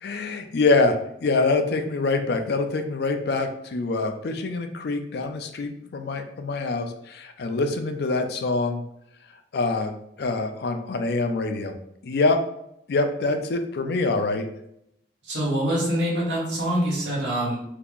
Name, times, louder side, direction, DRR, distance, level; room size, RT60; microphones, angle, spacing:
voice 1, 0.0-8.8 9.5-9.9 10.2-12.4 12.9-14.5, left 3 dB, 65° left, 7 dB, 0.4 m, -25 dB
voice 2, 15.2-17.6, right 1 dB, 85° right, -4 dB, 1.4 m, -25 dB
3.6 x 2.8 x 2.4 m, 0.77 s
head